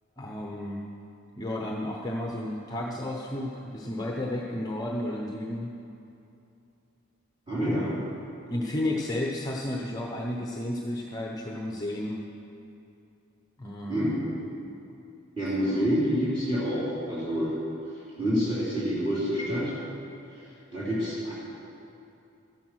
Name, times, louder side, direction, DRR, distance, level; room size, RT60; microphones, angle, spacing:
voice 1, 0.2-0.8 1.4-5.7 7.5-8.0 8.5-12.2 13.6-14.1 15.6-15.9, left 1 dB, 20° left, -1 dB, 0.8 m, -32 dB
voice 2, 7.5-7.9 13.9-14.2 15.4-17.5 18.2-19.7 20.7-21.3, equal, 25° right, -10 dB, 3.7 m, -27 dB
13.5 x 10.5 x 6.3 m, 2.7 s
head